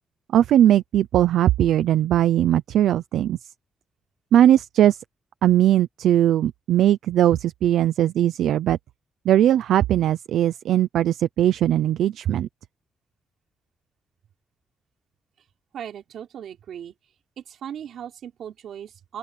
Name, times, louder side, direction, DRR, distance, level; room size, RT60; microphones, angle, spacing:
voice 1, 0.3-3.4 4.3-5.0 5.4-8.8 9.3-12.5, right 11 dB, 85° right, 0.6 m, -19 dB
voice 2, 15.7-16.9 17.4-19.2, right 9 dB, 65° right, 4.0 m, -37 dB
open air
cardioid pair, 150°, 0 cm